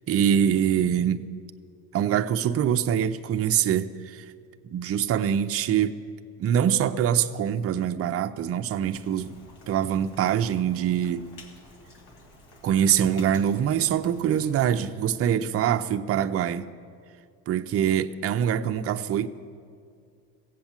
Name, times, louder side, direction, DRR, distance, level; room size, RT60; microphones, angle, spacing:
voice 1, 0.1-1.3 1.9-4.2 4.6-6.0 6.4-9.4 9.7-11.3 12.6-16.7 17.5-19.3, right 9 dB, 35° right, 0.5 m, -24 dB
Rain, 8.8-14.9, left 1 dB, 60° left, 2.1 m, -51 dB
16.5 x 8.1 x 7.2 m
cardioid pair, 120°, 42 cm